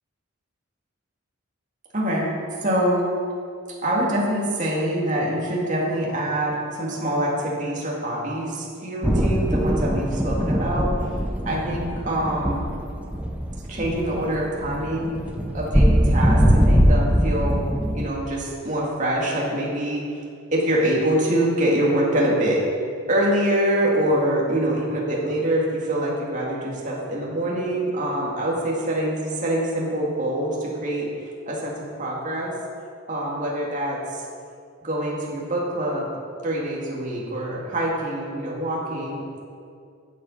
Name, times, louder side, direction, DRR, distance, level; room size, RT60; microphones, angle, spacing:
voice 1, 1.9-2.3 2.6-3.1 3.8-10.9 11.4-12.7 13.7-15.1 15.5-17.6 17.9-20.2 20.5-22.6 23.1-31.1 31.5-32.5 33.1-34.2 34.8-36.1 36.4-39.4, right 1 dB, 35° right, -4 dB, 2.2 m, -25 dB
sound 1, 9.0-18.1, equal, 5° right, 0.7 m, -21 dB
11.5 x 7.7 x 5.5 m, 2.3 s
head